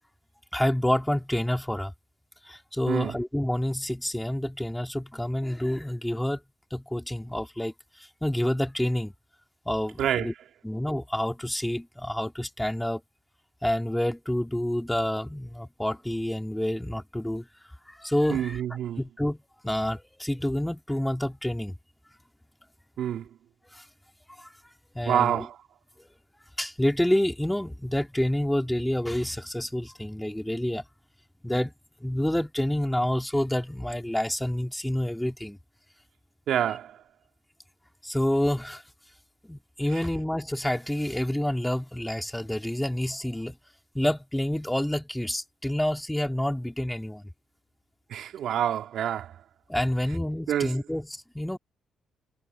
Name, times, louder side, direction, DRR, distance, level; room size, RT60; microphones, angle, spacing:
voice 1, 0.5-1.9 2.4-6.4 6.7-7.7 8.2-9.1 9.6-10.3 10.6-13.0 13.6-17.5 17.9-18.6 19.0-21.8 23.7-23.8 24.4-24.5 24.9-25.5 26.0-26.1 26.6-30.8 31.4-31.7 32.0-35.6 38.0-38.8 39.4-43.5 43.9-47.2 49.7-51.6, left 1 dB, 5° left, 4.8 m, -28 dB
voice 2, 2.9-3.2 10.0-10.3 18.3-19.0 23.0-23.3 25.0-25.6 36.5-37.0 39.9-40.0 48.1-49.4 50.5-50.8, right 10 dB, 75° right, 2.9 m, -27 dB
cardioid pair, 90°, 0 cm